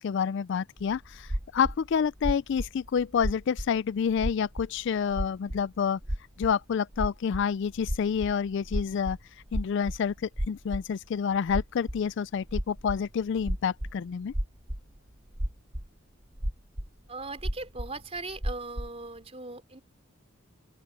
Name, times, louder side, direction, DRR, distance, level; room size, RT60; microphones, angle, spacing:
voice 1, 0.0-6.0 6.4-9.2 9.5-14.3, left 7 dB, 60° left, 0.3 m, -28 dB
sound 1, 0.8-3.8 4.1-4.8 5.1-5.6 6.0-6.5 6.9-11.1 11.5-12.1 12.4-14.0 14.3-15.9 16.3-17.0 17.3-18.9, equal, 50° right, 3.2 m, -33 dB
voice 2, 17.1-19.8, right 3 dB, 30° right, 4.0 m, -39 dB
open air
head